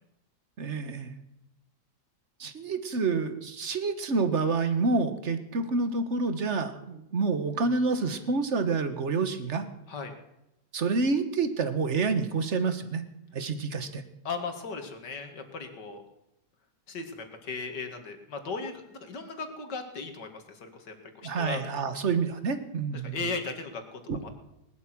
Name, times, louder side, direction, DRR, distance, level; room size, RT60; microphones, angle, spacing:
voice 1, 0.6-1.1 2.4-9.6 10.7-13.0 13.3-14.0 21.2-23.2 24.1-24.2, right 4 dB, 45° right, 10 dB, 1.5 m, -28 dB
voice 2, 14.2-16.0 16.9-21.6 22.9-24.3, left 4 dB, 80° left, 6 dB, 2.7 m, -37 dB
19.5 x 12.0 x 6.1 m, 0.88 s
omnidirectional pair, 1.8 m